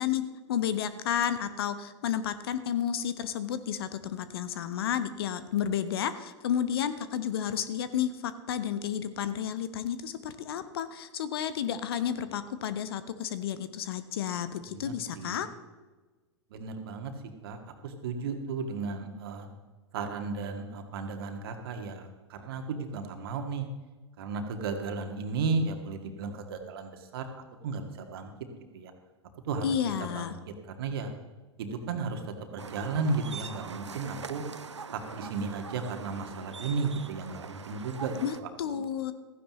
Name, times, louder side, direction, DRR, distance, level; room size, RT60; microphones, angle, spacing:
voice 1, 0.0-15.5 29.6-30.3 38.2-39.1, left 9 dB, 55° left, 12 dB, 1.0 m, -31 dB
voice 2, 14.7-15.5 16.5-17.1 17.4-19.5 19.9-23.7 24.2-27.3 27.6-28.3 28.7-28.9 29.5-31.1 31.6-32.2 32.5-34.4 34.9-38.8, right 4 dB, 55° right, 5 dB, 2.0 m, -34 dB
sound 1, 32.6-38.4, right 5 dB, 80° right, 0.7 m, -43 dB
16.0 x 15.0 x 3.1 m, 1.3 s
figure-of-eight pair, 95°, 15 cm